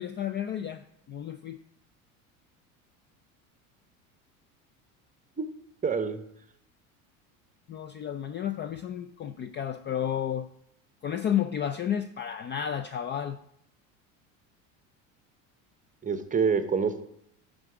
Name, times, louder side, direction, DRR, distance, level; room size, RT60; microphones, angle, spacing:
voice 1, 0.0-1.6 7.7-10.5 11.0-13.4, left 9 dB, 30° left, 10 dB, 0.4 m, -32 dB
voice 2, 5.8-6.2 16.0-17.0, right 6 dB, 20° right, 10 dB, 0.9 m, -26 dB
10.5 x 3.7 x 5.9 m, 0.73 s
supercardioid pair, 95°, 42 cm